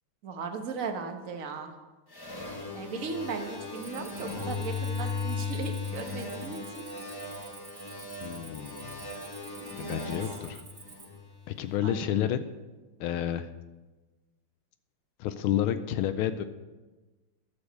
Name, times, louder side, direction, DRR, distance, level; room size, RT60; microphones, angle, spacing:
voice 1, 0.2-1.7 2.7-6.8 9.8-10.1 11.8-12.3, right 4 dB, 45° right, 5 dB, 1.3 m, -37 dB
sound 1, 2.1-11.6, left 4 dB, 20° left, 0.6 m, -37 dB
Cricket, 3.7-11.2, right 4 dB, 75° right, 0.4 m, -50 dB
voice 2, 8.2-9.1 9.8-10.6 11.5-12.5 13.0-13.5 15.2-16.4, left 11 dB, 80° left, 10 dB, 1.4 m, -30 dB
11.5 x 6.8 x 6.7 m, 1.2 s
omnidirectional pair, 2.3 m